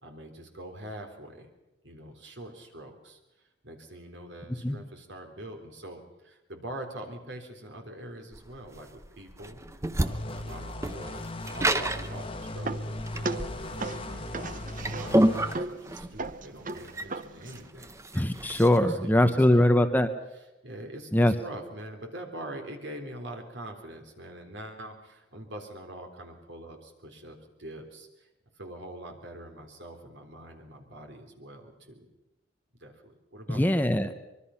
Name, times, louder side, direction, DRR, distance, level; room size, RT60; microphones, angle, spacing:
voice 1, 0.0-1.5 1.8-3.2 3.6-9.6 10.0-18.0 18.8-19.8 20.6-28.3 28.6-32.1 32.8-34.0, right 1 dB, 65° right, 4 dB, 3.6 m, -44 dB
sound 1, 8.3-18.8, right 1 dB, 15° right, 0.8 m, -30 dB
sound 2, 10.0-15.6, left 1 dB, 30° left, 1.2 m, -38 dB
sound 3, 11.9-17.7, right 3 dB, 45° right, 0.8 m, -38 dB
voice 2, 18.1-20.1 21.1-21.3 33.5-34.2, left 1 dB, 10° left, 8 dB, 1.0 m, -22 dB
24.5 x 23.0 x 5.8 m, 1.0 s
head